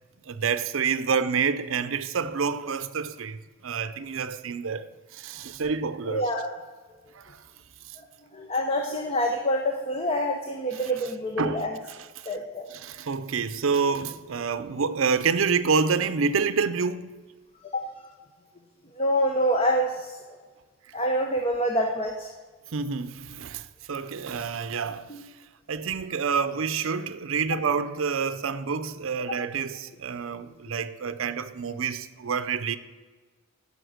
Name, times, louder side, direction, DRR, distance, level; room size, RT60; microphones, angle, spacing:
voice 1, 0.3-6.3 7.1-7.4 7.9-8.0 10.7-10.9 11.4-12.3 12.7-17.1 22.7-25.1 25.7-32.8, right 5 dB, 70° right, 0.5 m, -28 dB
voice 2, 6.1-6.5 8.3-11.7 12.3-12.6 17.7-17.8 19.0-20.1 20.9-22.3 25.1-25.2, equal, 30° left, 0.9 m, -26 dB
11.5 x 5.3 x 7.9 m
head